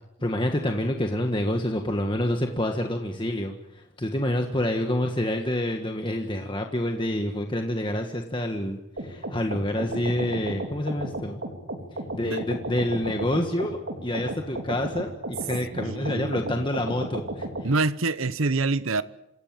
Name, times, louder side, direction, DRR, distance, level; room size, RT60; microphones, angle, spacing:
voice 1, 0.2-11.4 12.1-17.7, left 1 dB, 25° left, 1.6 m, -28 dB
sound 1, 9.0-17.7, right 1 dB, 65° right, 3.8 m, -34 dB
voice 2, 15.7-16.7 17.6-19.0, right 3 dB, 80° right, 1.0 m, -26 dB
27.0 x 16.5 x 9.1 m
head